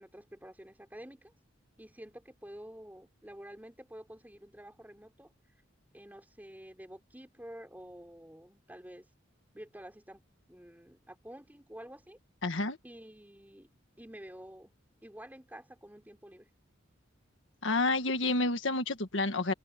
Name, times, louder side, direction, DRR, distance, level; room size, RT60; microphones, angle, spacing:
voice 1, 0.0-1.3 1.8-5.3 5.9-9.1 9.5-10.2 10.5-12.2 12.8-13.7 14.0-14.7 15.0-16.5, equal, 10° right, 4.1 m, -49 dB
voice 2, 12.4-12.8 17.6-19.5, left 2 dB, 70° left, 1.7 m, -29 dB
head